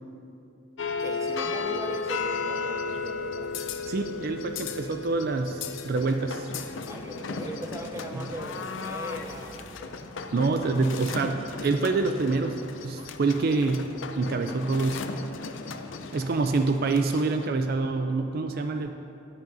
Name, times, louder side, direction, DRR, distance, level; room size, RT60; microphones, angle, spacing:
sound 1, 0.8-17.4, left 4 dB, 85° left, 0.6 m, -35 dB
voice 1, 1.0-3.7 6.8-9.7 16.2-16.5, right 1 dB, 15° right, 3 dB, 0.7 m, -39 dB
voice 2, 3.9-6.5 8.1-8.2 10.3-12.6 12.8-13.9 14.2-15.1 16.1-18.9, right 3 dB, 50° right, 6 dB, 0.4 m, -26 dB
15.5 x 9.0 x 2.7 m, 2.7 s
head